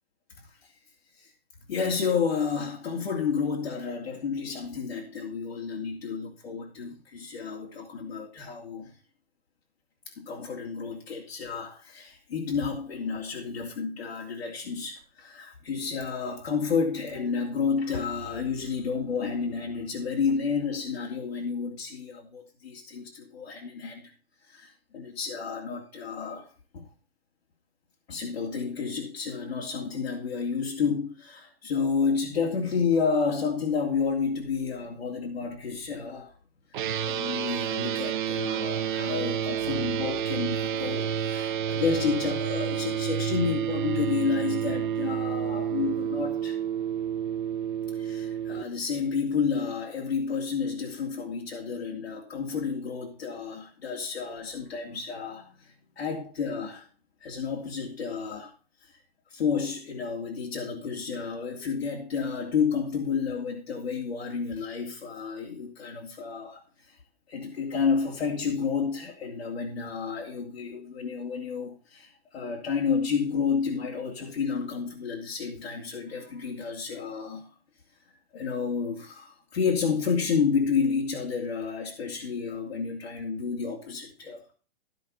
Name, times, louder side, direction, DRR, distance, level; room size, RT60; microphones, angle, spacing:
voice 1, 1.7-8.9 10.2-24.1 24.5-26.9 28.1-36.3 36.7-46.6 47.9-56.9 57.2-58.5 58.8-58.9 59.3-67.0 67.3-77.5 78.3-84.4, left 5 dB, 80° left, 3.1 m, -30 dB
sound 1, 36.7-48.6, right 9 dB, 50° right, 1.0 m, -29 dB
15.5 x 5.2 x 5.3 m
hypercardioid pair, 170°, 31 cm